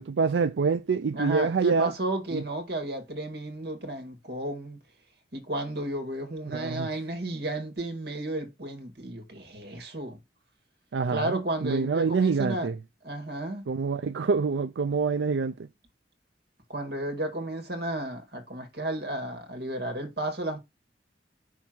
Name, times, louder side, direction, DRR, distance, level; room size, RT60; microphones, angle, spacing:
voice 1, 0.1-1.9 2.3-2.4 6.5-6.9 10.9-12.8 13.7-15.5, right 5 dB, 85° right, 0.4 m, -26 dB
voice 2, 1.1-4.8 5.3-10.2 11.1-12.7 13.0-13.6 16.7-20.6, right 1 dB, 65° right, 2.1 m, -33 dB
6.0 x 3.5 x 6.0 m
head